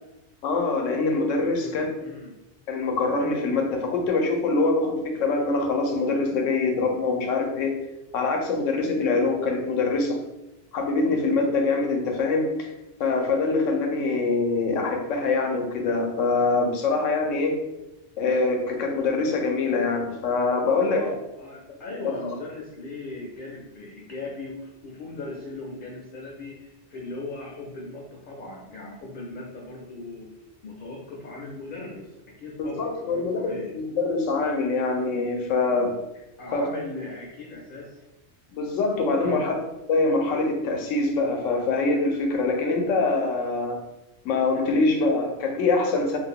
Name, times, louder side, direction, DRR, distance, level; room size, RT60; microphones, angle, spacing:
voice 1, 0.4-1.9 2.7-7.7 8.1-10.2 10.7-12.7 13.0-17.5 18.2-21.0 32.6-35.9 36.5-36.6 38.5-39.5 39.9-43.8 44.2-46.2, left 3 dB, 85° left, 3 dB, 1.0 m, -24 dB
voice 2, 2.0-2.3 20.8-30.3 30.6-32.1 32.4-33.7 36.4-38.0 39.2-39.5, left 2 dB, 55° left, -2 dB, 0.6 m, -38 dB
2.5 x 2.1 x 3.6 m, 0.97 s
omnidirectional pair, 1.3 m